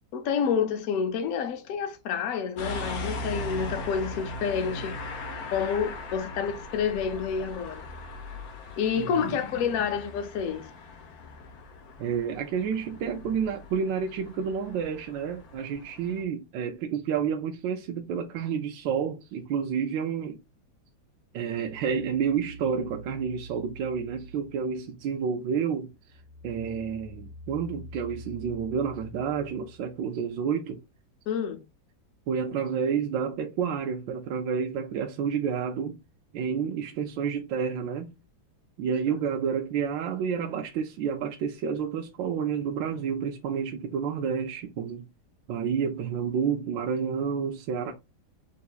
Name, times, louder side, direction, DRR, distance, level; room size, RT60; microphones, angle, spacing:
voice 1, 0.1-5.0 5.5-7.8 8.8-10.7 31.3-31.6, left 7 dB, 75° left, 0.8 m, -28 dB
sound 1, 2.6-16.2, left 2 dB, 60° left, 1.1 m, -39 dB
voice 2, 9.0-9.4 12.0-20.4 21.3-25.9 26.4-30.8 32.3-36.0 36.3-38.1 38.8-45.0 45.5-47.9, right 7 dB, 75° right, 1.2 m, -30 dB
sound 2, 21.4-25.2 25.6-30.2, equal, 15° right, 1.0 m, -46 dB
6.7 x 2.7 x 2.3 m
omnidirectional pair, 2.2 m